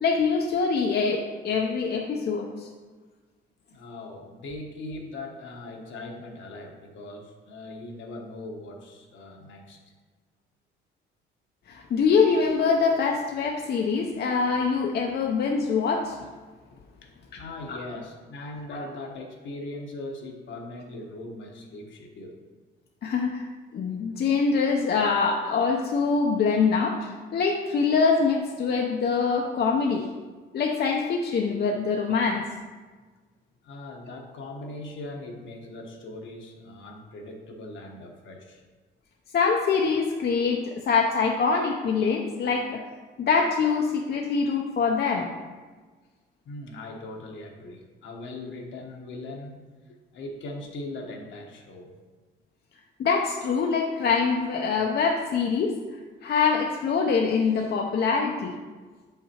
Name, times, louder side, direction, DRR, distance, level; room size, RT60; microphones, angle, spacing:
voice 1, 0.0-2.7 11.7-16.2 17.7-17.8 18.7-18.9 23.0-23.5 23.7-30.1 30.5-32.4 39.3-42.8 43.2-45.3 53.0-55.8 56.2-58.5, left 5 dB, 55° left, 1 dB, 0.6 m, -24 dB
voice 2, 3.7-9.8 17.0-22.4 33.6-38.6 46.4-49.6 50.1-51.9, left 2 dB, 75° left, 2 dB, 1.1 m, -40 dB
7.3 x 5.7 x 2.9 m, 1.4 s
cardioid pair, 90°, 20 cm